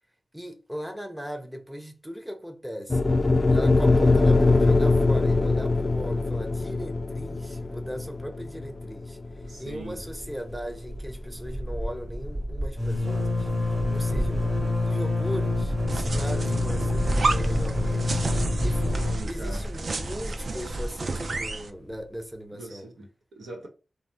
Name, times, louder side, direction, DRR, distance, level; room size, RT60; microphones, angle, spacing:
voice 1, 0.3-3.1 3.5-9.2 9.6-13.5 13.9-18.2 18.6-22.9, equal, 5° right, 0.6 m, -38 dB
sound 1, 2.9-11.1, left 3 dB, 40° left, 0.4 m, -22 dB
voice 2, 9.5-10.0 19.0-19.6 22.5-23.7, right 2 dB, 85° right, 0.9 m, -41 dB
sound 2, 9.8-10.2 10.5-10.6 10.9-21.5, left 1 dB, 40° right, 1.2 m, -27 dB
sound 3, 15.9-21.7, right 3 dB, 60° right, 0.4 m, -32 dB
3.2 x 2.0 x 2.6 m
cardioid pair, 55°, 0 cm